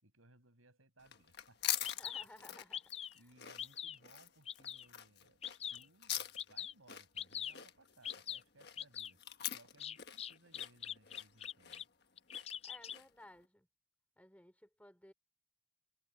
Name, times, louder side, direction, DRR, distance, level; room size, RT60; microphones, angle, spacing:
voice 1, 0.0-2.3 3.1-5.4 5.7-9.2 9.5-11.9, right 2 dB, 80° right, 6.1 m, -65 dB
sound 1, 1.0-13.2, left 11 dB, 50° left, 1.4 m, -45 dB
Bird vocalization bird call bird song, 1.4-1.5 1.8-2.2 2.7-3.2 3.6-4.0 4.5-4.9 5.4-5.8 6.4-6.7 7.2-7.5 8.0-8.4 8.8-9.1 9.8-11.8 12.2-13.0, left 9 dB, 30° left, 0.3 m, -43 dB
voice 2, 1.9-3.3 12.6-13.7 14.2-15.1, left 1 dB, 5° left, 3.0 m, -58 dB
head